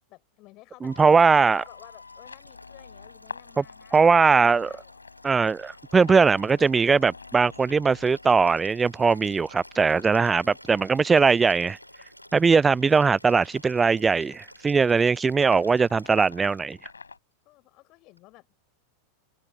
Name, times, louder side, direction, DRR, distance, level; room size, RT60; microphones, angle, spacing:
voice 1, 0.1-5.0 17.4-18.5, left 20 dB, 40° left, 6.5 m, -53 dB
voice 2, 0.8-1.6 3.6-3.7 3.9-4.7 5.2-11.8 12.3-16.8, right 5 dB, 15° right, 0.5 m, -20 dB
Liquid, 0.8-16.9 18.2-18.3, equal, 90° right, 2.7 m, -52 dB
sound 1, 0.9-17.2, left 4 dB, 75° left, 5.1 m, -47 dB
open air
figure-of-eight pair, 90°, 0 cm